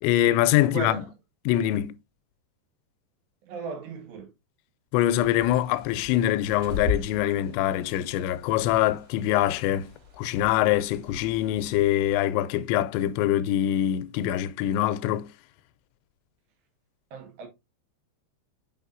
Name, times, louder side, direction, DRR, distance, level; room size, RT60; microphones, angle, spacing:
voice 1, 0.0-1.0 1.5-2.0 4.9-15.3, left 13 dB, 90° left, 2.9 m, -24 dB
voice 2, 0.6-1.1 3.4-4.3 17.1-17.5, right 5 dB, 75° right, 3.6 m, -36 dB
Bird, 5.1-12.2, left 5 dB, 45° right, 2.9 m, -38 dB
8.1 x 4.7 x 2.6 m
omnidirectional pair, 5.1 m